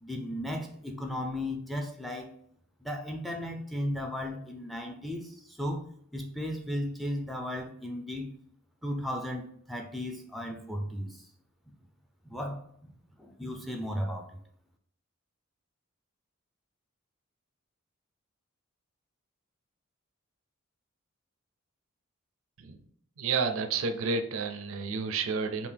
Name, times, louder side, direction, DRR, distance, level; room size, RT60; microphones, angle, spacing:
voice 1, 0.0-2.3 2.8-5.8 6.1-8.3 8.8-11.3 12.2-12.6 13.2-14.3, equal, ahead, 2 dB, 0.4 m, -35 dB
voice 2, 23.2-25.7, right 5 dB, 70° right, 6 dB, 0.4 m, -30 dB
3.6 x 2.5 x 3.4 m, 0.66 s
head